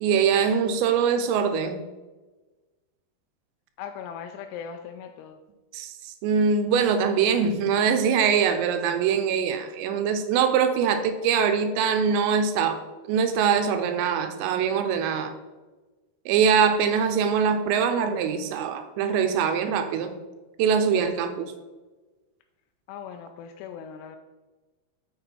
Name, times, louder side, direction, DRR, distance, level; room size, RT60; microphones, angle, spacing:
voice 1, 0.0-1.8 5.7-12.8 13.1-15.3 16.3-20.1 20.6-21.5, right 6 dB, 80° right, 8 dB, 2.8 m, -23 dB
voice 2, 3.8-5.4 22.9-24.2, left 7 dB, 85° left, 6 dB, 2.3 m, -39 dB
6.9 x 6.3 x 4.4 m, 1.2 s
omnidirectional pair, 5.3 m